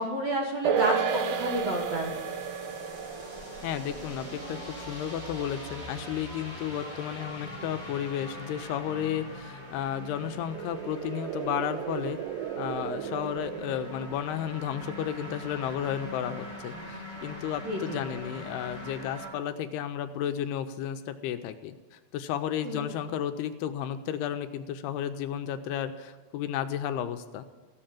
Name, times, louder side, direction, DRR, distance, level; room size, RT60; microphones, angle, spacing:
voice 1, 0.0-2.1 17.7-18.0 22.6-22.8, right 1 dB, 55° right, 0 dB, 2.0 m, -30 dB
sound 1, 0.6-7.3 7.6-7.7, right 6 dB, 70° right, 2.5 m, -33 dB
sound 2, 1.1-19.3, equal, 15° right, 2.9 m, -43 dB
voice 2, 3.6-12.2 12.6-27.4, left 10 dB, 80° left, 8 dB, 2.5 m, -33 dB
sound 3, 10.0-14.4, right 10 dB, 90° right, 3.0 m, -37 dB
15.0 x 7.7 x 8.7 m, 1.4 s
omnidirectional pair, 4.8 m